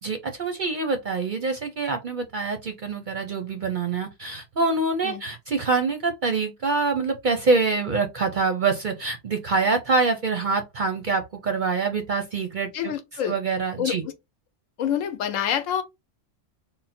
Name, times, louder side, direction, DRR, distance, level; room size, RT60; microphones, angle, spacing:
voice 1, 0.0-12.9 13.3-14.0, right 4 dB, 55° right, 0.6 m, -25 dB
voice 2, 12.7-13.4 13.8-14.1 14.8-15.8, left 9 dB, 80° left, 1.0 m, -27 dB
3.7 x 2.0 x 4.1 m
omnidirectional pair, 1.4 m